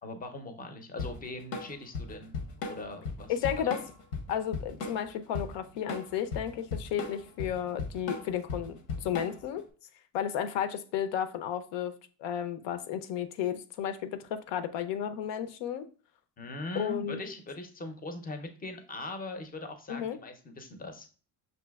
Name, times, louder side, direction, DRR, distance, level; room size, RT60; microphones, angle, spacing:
voice 1, 0.0-2.4 2.7-3.7 16.4-21.1, left 2 dB, 20° left, 0.5 m, -41 dB
Drum kit / Drum, 1.0-9.6, left 4 dB, 90° left, 0.9 m, -37 dB
voice 2, 3.3-3.8 4.3-9.6 10.1-11.9 12.2-15.9 16.8-17.2 19.9-20.2, left 9 dB, 70° left, 0.6 m, -33 dB
6.1 x 2.7 x 2.3 m
cardioid pair, 115°, 45 cm